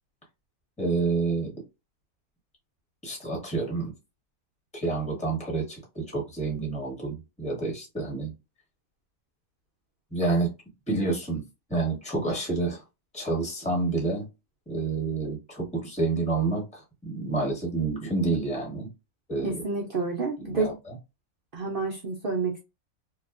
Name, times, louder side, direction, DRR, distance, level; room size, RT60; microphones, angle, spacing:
voice 1, 0.8-1.5 3.0-3.9 4.7-8.3 10.1-10.5 10.9-11.4 11.7-12.8 13.1-14.3 14.7-18.9 19.3-19.6 20.4-20.7, right 3 dB, 5° left, -2 dB, 0.9 m, -28 dB
voice 2, 19.4-20.8 21.5-22.6, right 4 dB, 65° right, 0 dB, 0.5 m, -29 dB
2.8 x 2.3 x 2.4 m, 0.26 s
omnidirectional pair, 1.5 m